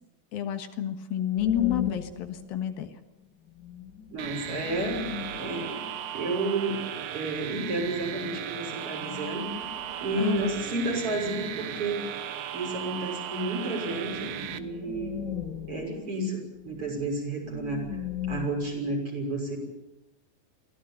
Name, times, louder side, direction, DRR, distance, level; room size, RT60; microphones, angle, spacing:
voice 1, 0.3-2.9 10.2-10.4, left 11 dB, 80° left, 7 dB, 3.3 m, -29 dB
sound 1, 1.4-2.9 3.2-3.3 3.5-6.6 8.9-11.0 13.6-13.7 14.0-18.7, left 8 dB, 40° left, 2.1 m, -38 dB
voice 2, 4.1-5.8 6.1-6.9 7.1-9.5 10.0-12.0 12.5-15.3 15.7-18.0 18.3-19.6, right 2 dB, 35° right, 1 dB, 7.0 m, -31 dB
sound 2, 4.2-14.6, right 10 dB, 75° right, 1.4 m, -36 dB
24.0 x 16.5 x 9.1 m, 0.94 s
omnidirectional pair, 4.3 m